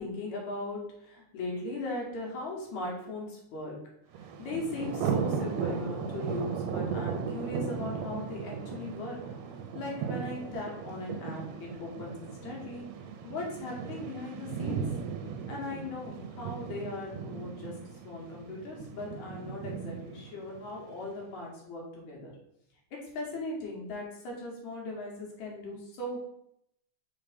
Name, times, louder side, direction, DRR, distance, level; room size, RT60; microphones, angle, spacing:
voice 1, 0.0-3.8 4.4-9.2 9.7-12.9 13.2-14.8 15.5-17.7 18.0-22.3 22.9-26.2, left 2 dB, 65° left, -2 dB, 2.9 m, -38 dB
Thunder, 4.1-21.1, right 6 dB, 75° right, 1.6 m, -37 dB
5.6 x 3.7 x 5.1 m, 0.79 s
omnidirectional pair, 3.6 m